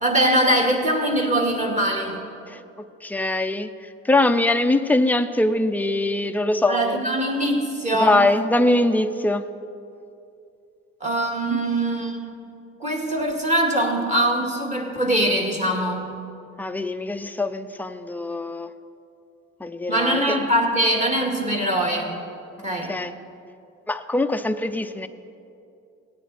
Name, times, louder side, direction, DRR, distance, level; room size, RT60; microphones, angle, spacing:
voice 1, 0.0-2.2 6.7-8.3 11.0-12.3 12.8-16.1 19.9-22.1 22.6-23.0, right 1 dB, 25° right, 0 dB, 2.2 m, -22 dB
voice 2, 3.0-3.7 4.0-7.0 8.0-9.5 16.6-18.7 19.6-20.4 22.9-23.1 23.9-25.1, left 2 dB, 5° left, 8 dB, 0.5 m, -22 dB
17.5 x 9.2 x 4.3 m, 2.6 s
cardioid pair, 90°, 30 cm